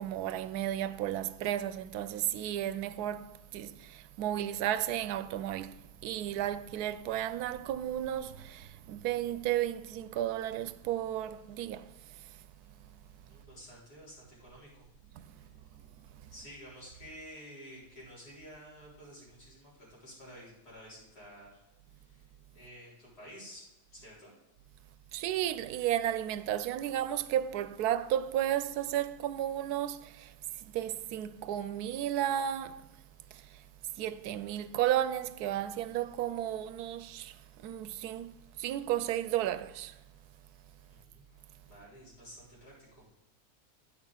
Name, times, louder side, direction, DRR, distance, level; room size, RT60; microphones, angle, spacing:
voice 1, 0.0-5.8 6.0-11.8 25.1-30.3 30.7-32.8 34.0-37.3 37.6-38.3 38.6-39.9, right 11 dB, 80° right, 1.1 m, -33 dB
voice 2, 13.3-14.8 15.4-15.5 16.3-21.6 21.9-22.3 22.5-23.6 23.9-24.3 40.9-41.2 41.6-43.1, equal, 90° left, 4.7 m, -51 dB
9.1 x 6.1 x 5.6 m
omnidirectional pair, 1.6 m